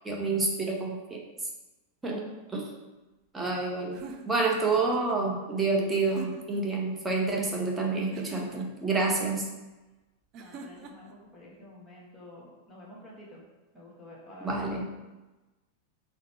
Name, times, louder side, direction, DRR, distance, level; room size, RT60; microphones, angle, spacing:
voice 1, 0.0-1.2 2.0-2.2 2.5-2.7 3.3-4.0 4.3-9.4 14.4-14.9, right 3 dB, 10° right, -1 dB, 0.7 m, -28 dB
sound 1, 3.9-5.2 6.0-6.7 8.1-8.9 10.3-11.1, right 3 dB, 35° right, 0.4 m, -44 dB
voice 2, 10.4-13.4 13.7-14.6, left 1 dB, 15° left, -4 dB, 1.3 m, -49 dB
3.8 x 2.1 x 4.4 m, 1.1 s
figure-of-eight pair, 90°, 0 cm